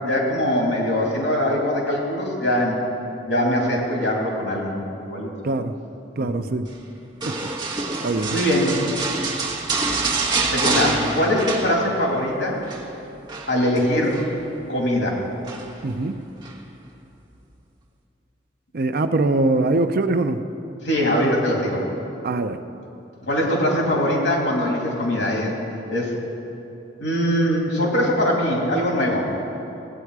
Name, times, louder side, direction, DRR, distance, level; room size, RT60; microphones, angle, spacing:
voice 1, 0.0-2.7 3.3-5.3 6.2-6.5 8.3-8.8 10.5-12.6 13.5-14.2 14.7-15.2 20.8-21.8 23.2-25.6 25.9-26.1 27.0-29.2, left 1 dB, 75° left, -2 dB, 2.7 m, -22 dB
voice 2, 6.2-6.6 7.3-7.4 8.0-8.4 15.8-16.2 18.7-20.4 22.2-22.6, right 2 dB, 55° right, 9 dB, 0.5 m, -22 dB
sound 1, 7.2-12.2 12.5-12.8 13.3-14.3 15.4-15.9 16.4-16.6, right 3 dB, 25° right, 1.2 m, -26 dB
16.5 x 8.9 x 4.7 m, 2.8 s
head